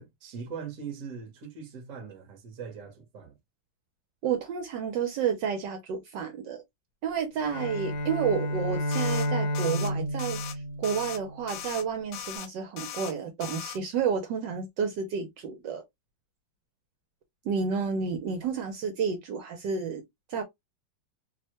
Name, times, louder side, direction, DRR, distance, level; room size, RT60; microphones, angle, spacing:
voice 1, 0.0-3.4, right 6 dB, 50° right, 1.1 m, -41 dB
voice 2, 4.2-6.6 7.0-15.8 17.4-20.0 20.3-20.4, right 6 dB, 75° right, 1.2 m, -30 dB
Bowed string instrument, 7.5-11.7, equal, 65° left, 1.3 m, -31 dB
sound 1, 8.9-9.3 9.5-9.9 10.2-10.5 10.8-11.2 11.5-11.8 12.1-12.5 12.8-13.1 13.4-13.8, left 10 dB, 85° left, 1.3 m, -39 dB
3.2 x 2.1 x 2.7 m
omnidirectional pair, 2.1 m